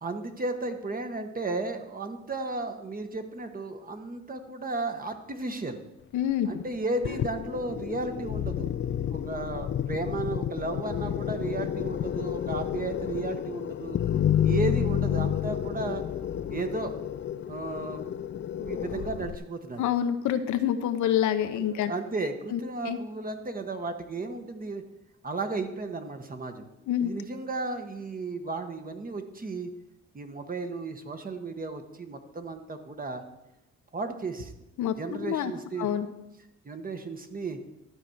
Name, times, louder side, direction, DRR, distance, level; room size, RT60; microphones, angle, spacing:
voice 1, 0.0-5.8 6.4-14.0 14.4-16.0 16.5-16.9 17.5-18.1 18.6-19.8 21.6-24.8 25.2-26.7 27.0-29.7 30.1-33.2 33.9-34.5 35.0-35.9 36.6-37.6, right 3 dB, 30° right, 7 dB, 1.2 m, -34 dB
voice 2, 6.1-6.5 19.8-21.9 22.5-22.6 22.8-23.0 26.9-27.1 34.8-34.9 35.3-35.5 35.8-36.1, left 10 dB, 75° left, 9 dB, 0.8 m, -26 dB
sound 1, 7.0-19.4, left 10 dB, 40° left, 0.4 m, -30 dB
12.5 x 4.4 x 7.9 m, 0.94 s
cardioid pair, 90°, 30 cm